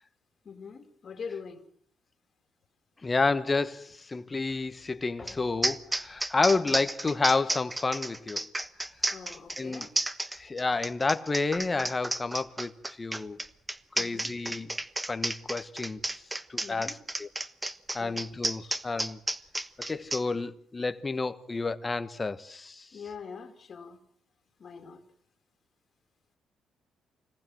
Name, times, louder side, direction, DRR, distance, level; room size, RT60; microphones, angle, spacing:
voice 1, 0.4-1.7 6.5-6.6 9.1-9.9 14.0-14.3 16.6-17.0 18.0-18.2 18.6-18.7 22.9-24.0 24.6-25.0, left 5 dB, 45° left, 2.6 m, -43 dB
voice 2, 3.0-8.4 9.6-9.9 10.3-12.7 13.0-13.4 13.9-14.7 15.0-16.2 16.5-17.3 17.9-19.2 19.8-22.9, left 3 dB, 25° left, 1.4 m, -30 dB
sound 1, 5.3-5.4 5.6-20.2, right 1 dB, 15° right, 1.2 m, -32 dB
25.5 x 18.5 x 7.7 m
cardioid pair, 90°, 0 cm